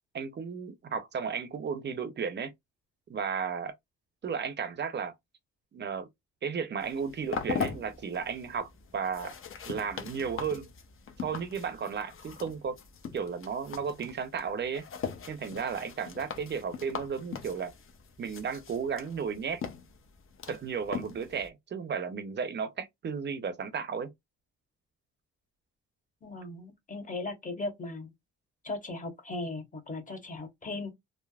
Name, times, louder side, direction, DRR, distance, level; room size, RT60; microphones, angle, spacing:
voice 1, 0.1-2.5 3.1-3.7 4.2-5.1 5.7-6.1 6.4-9.3 9.6-10.7 11.2-12.8 13.1-14.8 15.3-17.7 18.2-19.6 20.5-24.1, right 6 dB, 35° right, 0.6 m, -34 dB
sound 1, 6.8-21.5, left 6 dB, 45° left, 0.7 m, -41 dB
voice 2, 26.2-28.1 28.6-30.9, left 2 dB, 25° left, 1.0 m, -37 dB
3.3 x 2.0 x 2.3 m
cardioid pair, 90°, 30 cm